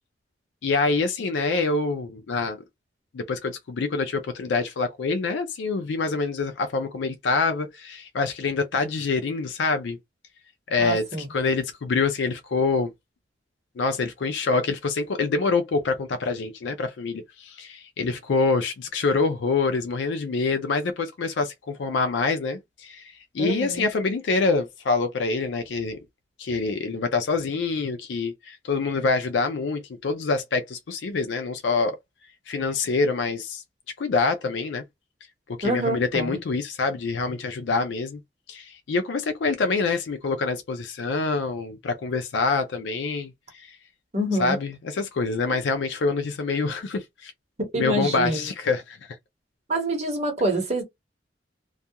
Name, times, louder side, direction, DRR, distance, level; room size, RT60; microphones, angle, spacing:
voice 1, 0.6-2.6 3.1-10.0 10.7-12.9 13.8-26.0 26.4-32.0 32.5-33.6 34.0-34.8 35.5-38.2 38.5-43.8 44.4-47.3 47.8-49.0, left 4 dB, 75° left, 0.4 m, -26 dB
voice 2, 10.8-11.3 23.4-23.9 35.6-36.4 44.1-44.6 47.6-48.5 49.7-50.8, right 1 dB, 40° right, 1.0 m, -26 dB
2.3 x 2.2 x 2.7 m
head